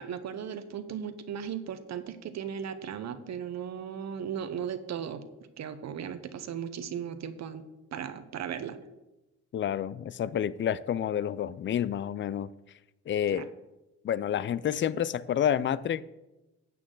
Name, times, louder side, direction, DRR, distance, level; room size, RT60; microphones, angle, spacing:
voice 1, 0.0-5.2 5.6-7.6 7.9-8.8 13.3-13.4, right 8 dB, 60° right, 1.0 m, -36 dB
voice 2, 9.5-12.5 13.1-13.5 14.0-16.0, left 9 dB, 40° left, 0.5 m, -29 dB
12.5 x 8.5 x 3.9 m
cardioid pair, 90°, 30 cm